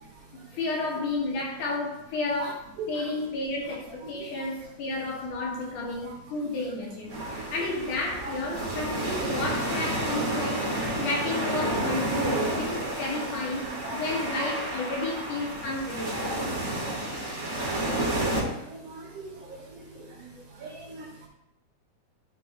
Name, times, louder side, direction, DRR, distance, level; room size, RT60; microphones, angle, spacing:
voice 1, 0.5-13.6 13.9-16.5, left 3 dB, 80° left, -2 dB, 3.1 m, -32 dB
voice 2, 4.2-4.5 6.0-6.2 7.2-7.4 8.2-8.6 12.0-12.6 13.1-13.2 13.7-14.2 16.2-16.6 16.9-17.2 17.8-21.3, right 2 dB, 65° right, -1 dB, 1.8 m, -41 dB
sound 1, 7.1-18.4, right 1 dB, 25° right, 1.9 m, -31 dB
11.5 x 4.4 x 3.3 m, 0.85 s
omnidirectional pair, 3.5 m